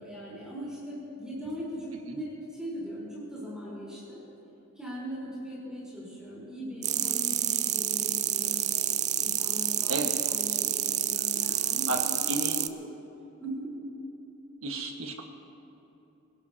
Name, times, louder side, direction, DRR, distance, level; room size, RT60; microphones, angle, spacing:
voice 1, 0.0-4.2 4.8-8.7 9.2-9.9 10.2-12.3 12.7-12.9 13.4-13.7, equal, 5° right, -7 dB, 4.2 m, -40 dB
sound 1, 6.8-12.7, right 11 dB, 35° right, 0.4 m, -28 dB
voice 2, 12.3-12.6 14.6-15.2, right 2 dB, 75° right, 2 dB, 1.6 m, -32 dB
26.0 x 17.0 x 2.9 m, 2.9 s
head